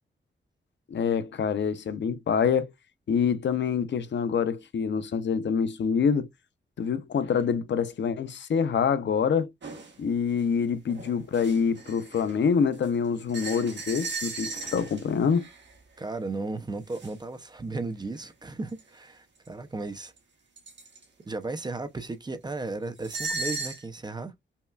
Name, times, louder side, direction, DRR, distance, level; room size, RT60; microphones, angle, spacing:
voice 1, 0.9-2.7 3.1-6.3 6.8-9.5 10.0-15.5, left 6 dB, 65° left, 0.5 m, -26 dB
sound 1, 9.6-9.9 10.4-10.5 10.9-12.4 12.7-15.7 16.9-17.1 18.7-18.8 19.5-19.6 20.2-20.3 20.6-21.0 23.0-23.8, right 3 dB, 65° right, 1.5 m, -36 dB
voice 2, 16.0-20.1 21.3-24.3, right 3 dB, 20° right, 0.5 m, -35 dB
5.4 x 2.3 x 2.2 m
wide cardioid pair, 145°, 20 cm